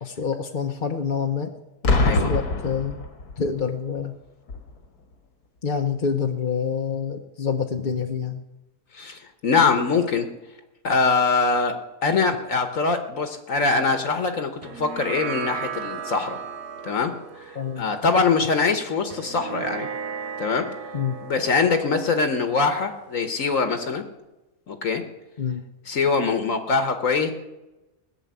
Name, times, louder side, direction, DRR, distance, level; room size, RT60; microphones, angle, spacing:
voice 1, 0.0-1.5 1.8-3.0 3.4-4.1 5.6-8.4 17.5-17.9 20.9-21.2 25.4-25.6, left 6 dB, 40° left, 3 dB, 0.8 m, -27 dB
Boom, 1.8-3.6 4.5-4.7, left 3 dB, 80° left, 2.0 m, -23 dB
voice 2, 8.9-10.3 10.8-11.8 12.0-16.4 16.8-19.9 20.4-20.7 21.2-24.0 24.7-25.0 25.9-27.3, left 4 dB, 60° left, 8 dB, 1.4 m, -23 dB
sound 1, 14.6-23.3, right 7 dB, 85° right, 1.5 m, -36 dB
18.0 x 6.9 x 9.4 m, 1.0 s
omnidirectional pair, 1.6 m